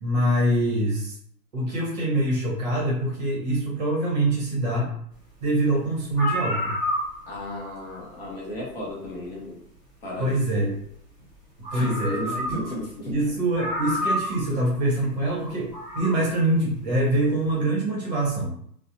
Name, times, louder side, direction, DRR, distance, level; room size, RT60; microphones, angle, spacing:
voice 1, 0.0-1.2 1.5-4.9 5.4-6.8 10.2-10.8 11.7-12.5 13.1-18.6, right 1 dB, 25° right, -4 dB, 0.8 m, -24 dB
sound 1, 5.7-5.8 6.1-7.5 8.9-9.0 11.2-11.3 11.6-12.8 13.1-13.2 13.6-14.5 15.6-16.2, left 1 dB, 10° left, 1.1 m, -29 dB
voice 2, 7.3-9.6 10.0-10.6 11.7-13.1, left 1 dB, 35° left, -3 dB, 0.7 m, -34 dB
2.5 x 2.0 x 2.8 m, 0.66 s
hypercardioid pair, 155°, 48 cm